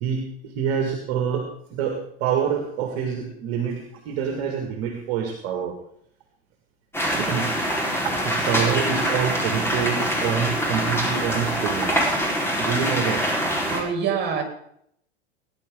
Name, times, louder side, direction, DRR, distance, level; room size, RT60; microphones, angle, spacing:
voice 1, 0.0-5.8 7.2-7.5 8.0-12.1 12.6-13.3, right 7 dB, 50° right, 3 dB, 2.2 m, -26 dB
sound 1, 6.9-13.8, equal, 5° left, 4.2 m, -24 dB
voice 2, 13.7-14.4, right 7 dB, 30° right, 3 dB, 4.0 m, -25 dB
19.0 x 10.5 x 3.8 m, 0.71 s
figure-of-eight pair, 90°, 32 cm